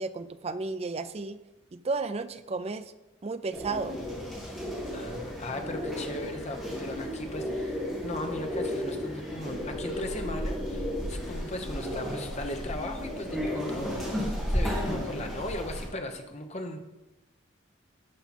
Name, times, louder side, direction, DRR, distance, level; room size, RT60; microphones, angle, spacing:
voice 1, 0.0-1.4 1.7-2.9 3.2-4.0, right 3 dB, 30° right, 11 dB, 0.4 m, -33 dB
sound 1, 3.5-15.9, equal, ahead, 2.3 m, -33 dB
voice 2, 4.9-16.8, left 1 dB, 35° left, 5 dB, 1.0 m, -38 dB
11.5 x 5.6 x 4.4 m, 1.0 s
head